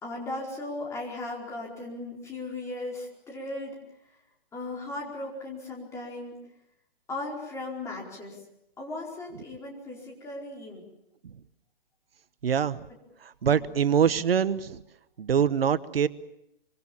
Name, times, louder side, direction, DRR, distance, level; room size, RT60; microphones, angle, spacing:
voice 1, 0.0-3.7 4.5-6.4 7.1-8.4 8.8-10.8 13.5-13.7, left 2 dB, 10° left, -2 dB, 4.7 m, -37 dB
voice 2, 12.4-12.8 13.2-14.8 15.2-16.1, right 8 dB, 80° right, 14 dB, 1.1 m, -24 dB
25.5 x 25.0 x 7.2 m, 0.80 s
hypercardioid pair, 160°, 29 cm